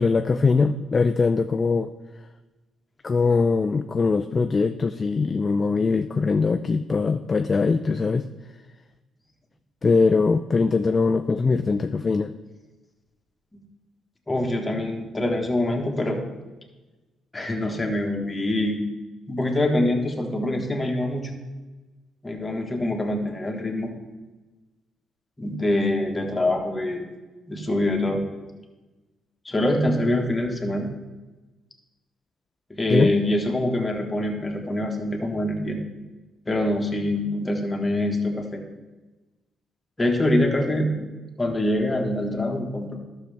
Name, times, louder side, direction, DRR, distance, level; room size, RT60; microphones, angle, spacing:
voice 1, 0.0-1.9 3.0-8.3 9.8-12.3 32.9-33.1, left 4 dB, 35° left, 9 dB, 0.3 m, -21 dB
voice 2, 14.3-16.2 17.3-18.8 19.3-21.3 22.2-23.9 25.4-27.1 27.5-28.2 29.4-30.9 32.7-35.8 36.5-38.6 40.0-41.1 41.4-43.0, left 1 dB, 20° left, 1 dB, 1.5 m, -24 dB
12.0 x 6.4 x 3.4 m, 1.2 s
cardioid pair, 90°, 0 cm